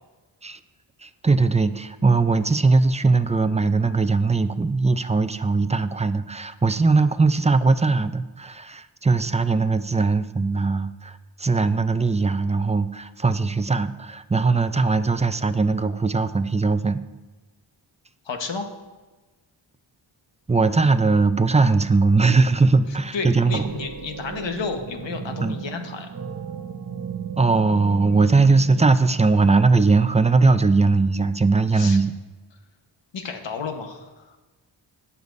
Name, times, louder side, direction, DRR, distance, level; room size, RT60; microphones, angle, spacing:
voice 1, 1.0-17.0 20.5-23.7 25.4-25.6 27.4-32.1, right 3 dB, 15° right, 11 dB, 0.4 m, -20 dB
voice 2, 18.2-18.7 23.1-26.1 31.7-32.0 33.1-34.4, left 4 dB, 70° left, 5 dB, 1.3 m, -31 dB
sound 1, 22.8-23.2 23.4-30.2, right 7 dB, 40° right, 0.8 m, -35 dB
17.5 x 6.9 x 2.7 m, 1.2 s
cardioid pair, 80°, 46 cm